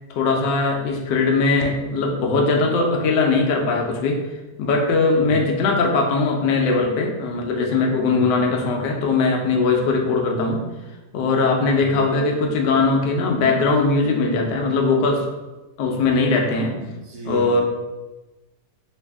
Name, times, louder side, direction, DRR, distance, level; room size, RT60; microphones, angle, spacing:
voice 1, 0.1-4.2 4.6-10.7 11.1-15.3 15.8-16.8 17.2-17.6, left 3 dB, 85° left, 2 dB, 1.3 m, -20 dB
voice 2, 11.7-12.0 16.7-17.6, equal, 70° right, -2 dB, 1.3 m, -34 dB
3.2 x 2.7 x 3.4 m, 1.1 s
omnidirectional pair, 1.8 m